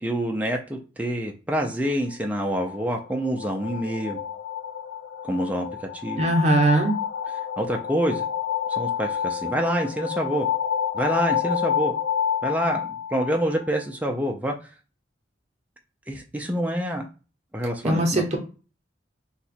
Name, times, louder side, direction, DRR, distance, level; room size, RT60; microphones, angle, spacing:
voice 1, 0.0-4.2 5.2-5.7 5.9-6.2 7.6-8.3 8.7-10.5 10.9-11.9 12.4-14.5 16.1-17.1 17.5-18.3, equal, 10° right, 1 dB, 0.4 m, -26 dB
sound 1, 2.1-13.8, left 8 dB, 85° left, 0.4 m, -29 dB
voice 2, 6.2-6.9 17.8-18.4, right 2 dB, 35° right, 2 dB, 0.7 m, -20 dB
2.8 x 2.2 x 4.1 m, 0.34 s
head